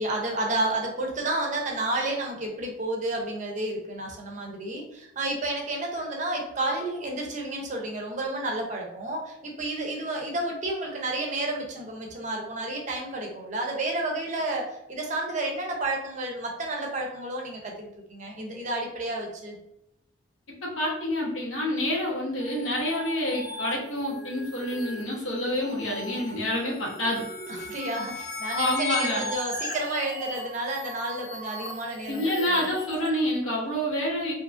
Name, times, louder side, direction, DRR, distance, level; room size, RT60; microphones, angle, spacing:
voice 1, 0.0-19.6 27.5-32.7, right 2 dB, 35° right, 0 dB, 0.5 m, -31 dB
voice 2, 20.6-27.2 28.5-29.2 32.1-34.3, left 1 dB, 80° left, -3 dB, 0.9 m, -28 dB
sound 1, 22.4-33.1, left 2 dB, 20° left, 0.3 m, -37 dB
2.7 x 2.4 x 2.4 m, 0.84 s
head